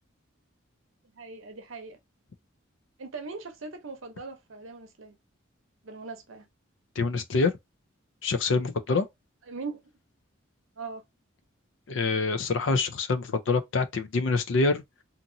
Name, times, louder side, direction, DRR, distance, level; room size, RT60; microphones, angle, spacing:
voice 1, 1.1-2.0 3.0-5.2 5.8-6.5 9.5-9.8 10.8-11.0, right 4 dB, 80° right, 0.7 m, -40 dB
voice 2, 7.0-7.5 8.2-9.1 11.9-14.8, left 3 dB, 65° left, 0.5 m, -26 dB
2.8 x 2.5 x 2.6 m
head